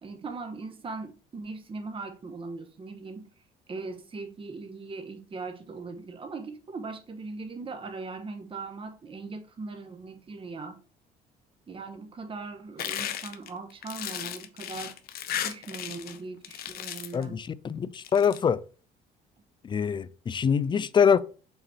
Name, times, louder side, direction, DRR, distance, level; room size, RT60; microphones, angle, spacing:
voice 1, 0.0-3.3 3.7-10.8 11.7-15.0 15.4-17.4, right 3 dB, 30° right, 1.2 m, -39 dB
sound 1, 12.8-16.2 16.4-17.2 17.9-18.4, left 10 dB, 65° left, 0.8 m, -35 dB
voice 2, 17.1-18.6 19.6-21.2, left 7 dB, 30° left, 0.4 m, -24 dB
5.8 x 4.1 x 4.3 m
cardioid pair, 110°, 17 cm